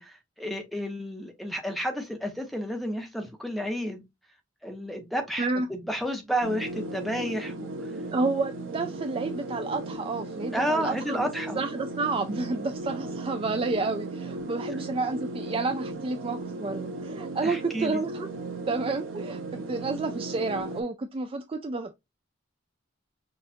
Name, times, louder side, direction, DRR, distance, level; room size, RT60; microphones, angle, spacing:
voice 1, 0.0-4.0 4.6-7.7 10.5-11.6 17.4-18.0, equal, ahead, 1.0 m, -31 dB
sound 1, 6.4-20.8, right 2 dB, 85° right, 1.0 m, -36 dB
voice 2, 8.1-11.3 11.6-18.3 18.7-21.9, right 3 dB, 30° right, 0.4 m, -30 dB
6.2 x 2.5 x 2.7 m
head